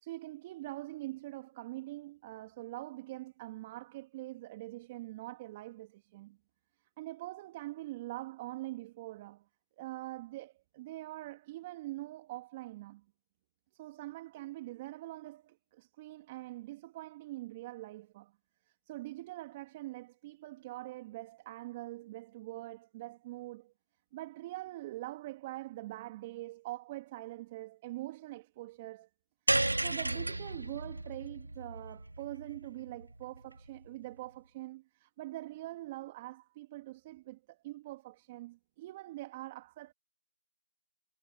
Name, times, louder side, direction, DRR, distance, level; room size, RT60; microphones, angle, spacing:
voice 1, 0.0-6.4 7.0-9.5 9.8-13.0 13.7-18.3 18.7-23.7 24.1-29.1 29.5-39.9, right 17 dB, 5° right, 2.5 m, -44 dB
sound 1, 29.5-33.9, right 2 dB, 45° right, 2.8 m, -34 dB
figure-of-eight pair, 175°, 0 cm